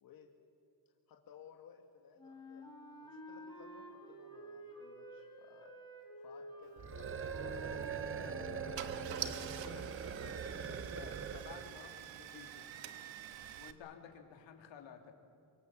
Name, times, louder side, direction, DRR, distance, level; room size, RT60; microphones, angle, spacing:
voice 1, 1.1-2.7 3.0-5.7 6.2-8.3, left 7 dB, 50° left, 2 dB, 1.9 m, -59 dB
Wind instrument woodwind instrument, 2.2-9.9, equal, 10° left, 3.9 m, -51 dB
sound 1, 6.8-11.8, right 6 dB, 30° right, 0.7 m, -42 dB
Car / Engine starting, 7.6-7.9 8.5-8.6 8.7-13.7, right 11 dB, 85° right, 1.4 m, -46 dB
voice 2, 8.0-12.6 13.6-15.1, left 7 dB, 80° left, 4 dB, 3.2 m, -54 dB
25.0 x 24.0 x 7.3 m, 2.5 s
cardioid pair, 170°, 44 cm